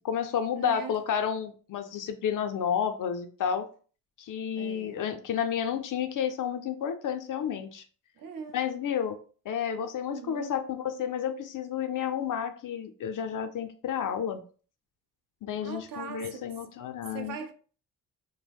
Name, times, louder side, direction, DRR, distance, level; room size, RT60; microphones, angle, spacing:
voice 1, 0.0-3.7 4.2-7.8 8.5-9.2 9.5-14.4 15.4-17.4, left 8 dB, 55° left, 0.5 m, -31 dB
voice 2, 0.5-0.9 4.6-5.0 8.2-8.6 10.1-10.5 15.6-16.4 17.1-17.5, right 5 dB, 55° right, 0.6 m, -40 dB
2.2 x 2.1 x 3.4 m
cardioid pair, 65°, 40 cm